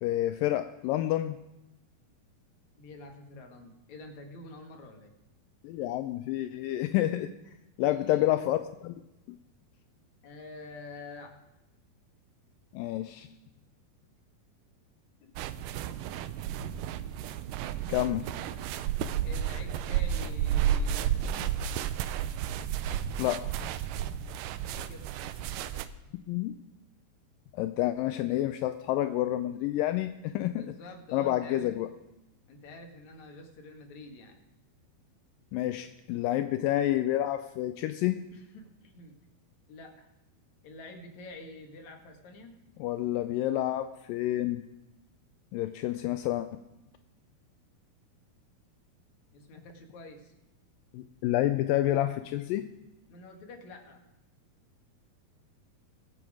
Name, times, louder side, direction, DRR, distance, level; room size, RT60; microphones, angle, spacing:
voice 1, 0.0-1.4 5.6-7.3 7.8-8.9 9.3-9.4 12.7-13.3 17.9-18.3 23.2-23.5 26.3-26.5 27.5-30.7 31.1-31.9 35.5-38.2 42.8-44.6 45.5-46.5 50.9-52.7, left 14 dB, 85° left, 10 dB, 1.9 m, -29 dB
voice 2, 2.7-5.1 7.9-8.3 10.2-11.4 15.2-15.3 19.2-21.5 24.6-25.1 25.4-25.7 30.6-31.7 32.5-34.4 38.3-39.2 39.7-40.1 40.6-42.6 49.3-50.3 53.1-54.0, left 2 dB, 55° left, 3 dB, 2.8 m, -47 dB
sound 1, 15.4-25.9, right 9 dB, 85° right, 1.9 m, -32 dB
23.5 x 7.8 x 4.9 m, 0.98 s
omnidirectional pair, 4.6 m